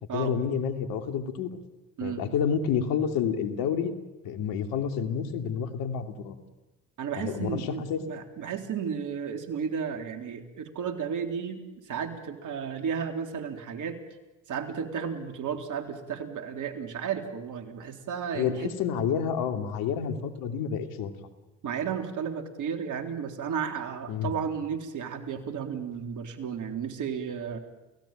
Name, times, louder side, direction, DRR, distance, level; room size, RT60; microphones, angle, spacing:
voice 1, 0.1-1.5 2.0-3.9 4.2-6.4 7.2-8.0 18.3-21.1 24.1-24.3, left 7 dB, 70° left, 7 dB, 2.8 m, -29 dB
voice 2, 7.0-14.0 14.5-18.7 21.6-27.6, right 7 dB, 55° right, 5 dB, 3.8 m, -33 dB
29.0 x 17.5 x 9.1 m, 1.1 s
hypercardioid pair, 70°, 37 cm